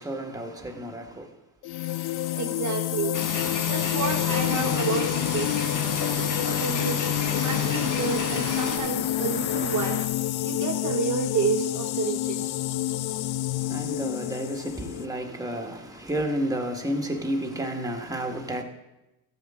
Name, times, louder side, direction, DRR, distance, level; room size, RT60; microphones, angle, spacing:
voice 1, 0.0-1.3 13.6-18.6, right 1 dB, 10° right, 1.5 m, -31 dB
sound 1, 1.6-15.1, left 14 dB, 65° left, 0.5 m, -28 dB
voice 2, 2.3-3.2 3.6-5.8 6.2-7.0 7.4-10.0 10.4-12.5, right 5 dB, 45° right, 0.9 m, -30 dB
sound 2, 3.1-8.8, left 3 dB, 50° left, 1.6 m, -32 dB
sound 3, 4.0-10.1, left 3 dB, 30° left, 1.2 m, -38 dB
12.5 x 8.1 x 3.7 m
cardioid pair, 80°, 41 cm